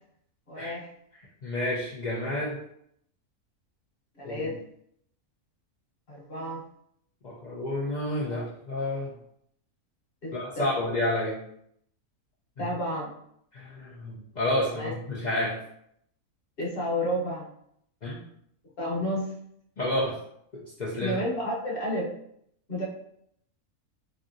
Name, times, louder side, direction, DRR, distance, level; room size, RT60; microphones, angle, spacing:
voice 1, 0.5-0.9 4.2-4.6 6.1-6.6 8.3-8.5 10.2-10.3 12.6-13.1 14.7-14.9 16.6-17.5 18.8-19.3 21.0-22.1 22.7-22.8, equal, 45° left, -5 dB, 1.0 m, -31 dB
voice 2, 1.4-2.6 4.2-4.5 7.2-9.1 10.3-11.4 12.6-12.7 13.5-15.6 18.0-18.3 19.8-20.2 20.8-21.2, left 1 dB, 80° left, -6 dB, 0.4 m, -30 dB
3.2 x 2.7 x 2.6 m, 0.71 s
omnidirectional pair, 1.6 m